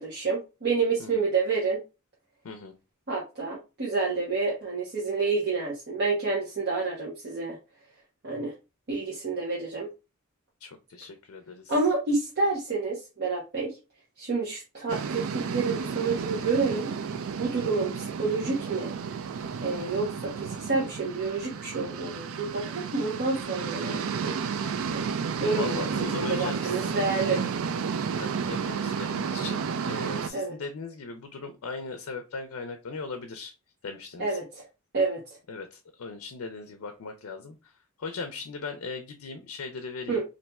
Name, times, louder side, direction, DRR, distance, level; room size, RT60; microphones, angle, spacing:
voice 1, 0.0-1.8 3.1-7.6 8.2-8.5 8.9-9.9 11.7-13.8 14.2-18.9 19.6-24.3 24.9-25.1 25.4-27.4 30.3-30.5 34.2-34.7 34.9-35.2 40.1-40.2, right 3 dB, 50° right, -4 dB, 0.9 m, -29 dB
voice 2, 10.6-11.7 25.6-27.0 28.2-33.5 33.8-34.4 35.5-37.7 38.0-40.2, left 4 dB, 70° left, 7 dB, 0.5 m, -38 dB
sound 1, 14.9-30.3, right 6 dB, 65° right, 0.4 m, -32 dB
4.1 x 2.6 x 2.2 m, 0.29 s
head